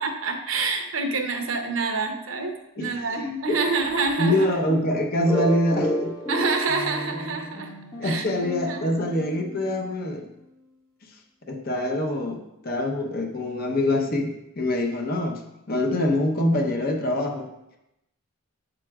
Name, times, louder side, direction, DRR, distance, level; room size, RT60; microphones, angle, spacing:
voice 1, 0.0-4.6 6.3-7.7 8.0-8.3 8.7-8.8, right 4 dB, 70° right, 4 dB, 0.9 m, -27 dB
voice 2, 2.8-3.6 4.2-6.1 8.0-10.3 11.5-15.4 15.7-17.5, left 1 dB, 45° left, 1 dB, 0.9 m, -25 dB
sound 1, 5.3-9.8, right 1 dB, 20° left, 1.3 m, -31 dB
7.8 x 7.5 x 2.4 m, 0.86 s
head